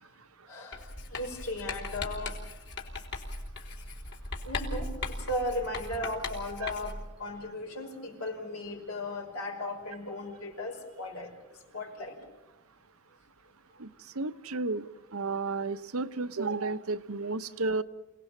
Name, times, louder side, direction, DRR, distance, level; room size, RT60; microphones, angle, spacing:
voice 1, 0.5-2.4 2.9-3.0 4.4-12.2 13.7-13.8, left 1 dB, 80° left, 2 dB, 5.6 m, -37 dB
Writing, 0.7-7.1, left 2 dB, 55° left, 3.8 m, -38 dB
voice 2, 14.1-14.9 15.1-17.8, right 3 dB, 70° right, 13 dB, 1.0 m, -32 dB
28.0 x 18.5 x 7.4 m, 1.1 s
head